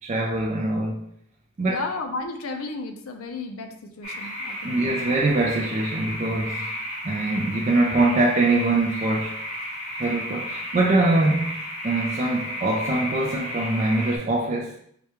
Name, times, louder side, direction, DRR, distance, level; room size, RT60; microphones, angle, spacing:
voice 1, 0.0-1.0 1.6-1.8 4.6-6.7 7.0-9.4 10.0-14.7, right 2 dB, 30° right, -2 dB, 0.4 m, -23 dB
voice 2, 1.6-5.0, left 3 dB, 70° left, 5 dB, 0.5 m, -33 dB
sound 1, 4.0-14.2, equal, 30° left, 0.8 m, -33 dB
4.7 x 2.2 x 2.9 m, 0.66 s
head